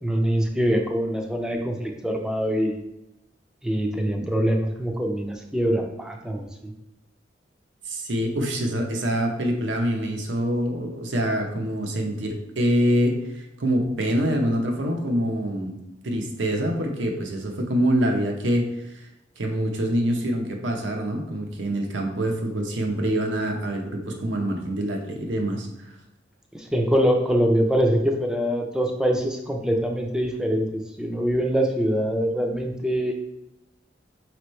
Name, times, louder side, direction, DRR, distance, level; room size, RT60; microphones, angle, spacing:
voice 1, 0.0-2.8 3.6-6.7 26.5-33.2, equal, 5° right, 2 dB, 0.4 m, -24 dB
voice 2, 7.9-15.8 16.0-18.9 19.4-25.7, equal, 90° right, 2 dB, 0.8 m, -25 dB
5.2 x 3.0 x 3.1 m, 0.91 s
head